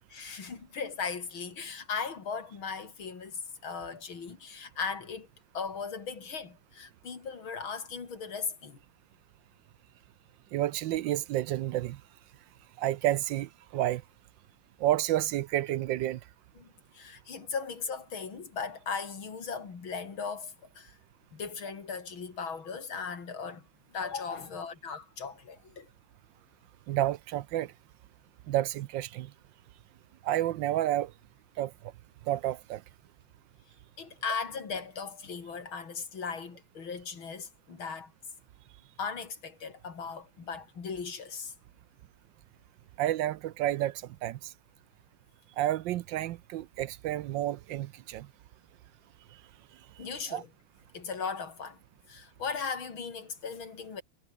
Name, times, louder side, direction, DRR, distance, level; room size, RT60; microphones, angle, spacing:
voice 1, 0.1-5.3 5.5-8.8 16.6-21.0 21.3-25.9 34.0-38.1 39.0-41.5 50.0-50.5 50.9-51.8 52.1-54.0, left 5 dB, 80° left, 3.7 m, -38 dB
voice 2, 10.5-12.0 12.8-14.0 14.8-16.2 26.9-27.7 28.5-29.3 30.2-31.1 31.6-31.7 32.3-32.8 43.0-44.5 45.6-48.3 50.3-50.4, right 13 dB, 70° right, 1.3 m, -30 dB
omnidirectional pair, 2.2 m